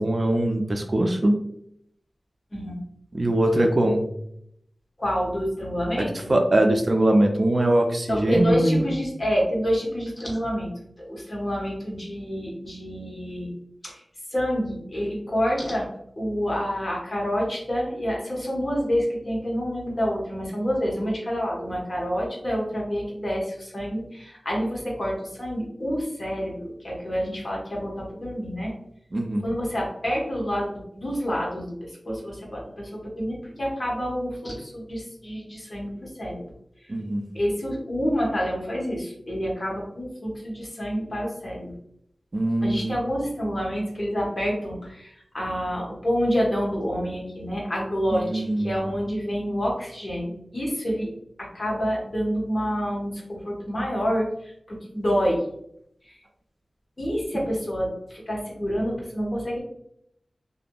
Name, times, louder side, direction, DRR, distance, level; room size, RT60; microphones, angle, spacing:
voice 1, 0.0-1.3 3.1-4.1 6.0-8.9 29.1-29.5 36.9-37.2 42.3-43.0 48.1-48.8, right 1 dB, 45° right, 4 dB, 0.3 m, -22 dB
voice 2, 2.5-2.8 5.0-6.3 8.1-10.7 11.0-13.5 13.8-14.0 14.3-15.9 16.2-28.7 29.4-35.9 36.2-36.4 37.3-41.7 42.6-51.1 51.4-54.3 54.7-55.4 57.0-59.6, equal, 40° left, -4 dB, 1.0 m, -28 dB
2.6 x 2.5 x 2.2 m, 0.73 s
wide cardioid pair, 75°, 0 cm